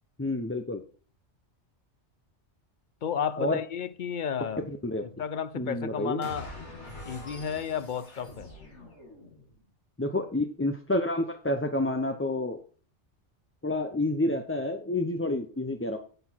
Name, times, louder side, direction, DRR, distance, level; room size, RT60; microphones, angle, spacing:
voice 1, 0.2-0.8 3.4-3.6 4.8-5.0 5.6-6.2 10.0-12.6 13.6-16.0, left 2 dB, 15° left, 0.6 m, -29 dB
voice 2, 3.0-4.7 5.0-6.5 7.0-8.5, left 7 dB, 50° left, 0.7 m, -32 dB
sound 1, 6.2-9.6, left 2 dB, 80° left, 2.7 m, -44 dB
10.0 x 6.1 x 4.5 m
omnidirectional pair, 1.2 m